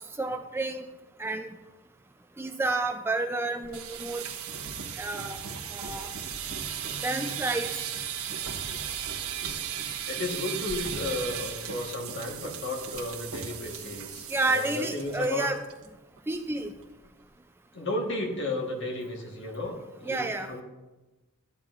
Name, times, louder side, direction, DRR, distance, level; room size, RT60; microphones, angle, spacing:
voice 1, 0.2-0.8 1.2-1.5 2.4-4.2 5.0-5.4 5.7-6.1 7.0-7.7 14.3-15.6 16.3-16.7 20.1-20.5, right 2 dB, 10° right, 6 dB, 0.3 m, -30 dB
sound 1, 3.6-15.3 15.6-15.9 16.2-16.3 16.6-17.0, right 8 dB, 75° right, 1.2 m, -36 dB
voice 2, 10.1-15.5 17.7-20.6, left 2 dB, 55° left, 1 dB, 1.4 m, -33 dB
13.0 x 9.2 x 2.5 m, 1.1 s
head